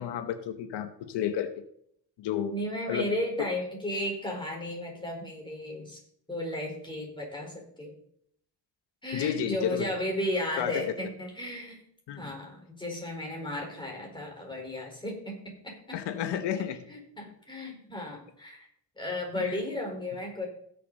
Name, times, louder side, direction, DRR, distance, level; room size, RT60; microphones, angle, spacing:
voice 1, 0.0-1.6 2.2-2.5 2.9-3.1 9.1-9.9 10.6-10.8 12.1-12.3 15.9-16.9 19.4-19.6, left 9 dB, 90° left, 9 dB, 1.1 m, -31 dB
voice 2, 2.5-6.0 6.3-7.9 9.0-11.8 12.2-16.0 16.9-18.6 19.0-20.5, left 1 dB, 10° left, 0 dB, 4.5 m, -34 dB
17.0 x 7.0 x 4.1 m, 0.67 s
cardioid pair, 110°, 40 cm